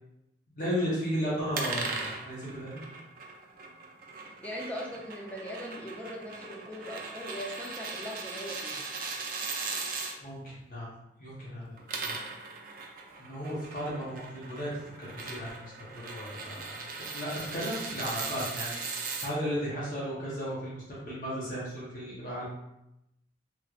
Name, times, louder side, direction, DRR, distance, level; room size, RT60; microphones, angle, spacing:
voice 1, 0.6-2.8 10.2-10.9 11.2-12.2 13.2-14.7 15.0-22.4, equal, 45° left, -7 dB, 0.9 m, -35 dB
sound 1, 1.5-10.1 11.7-19.3, right 4 dB, 50° right, 0.4 m, -38 dB
voice 2, 4.2-8.8, equal, 10° left, -3 dB, 0.5 m, -40 dB
3.1 x 3.0 x 2.4 m, 0.85 s
head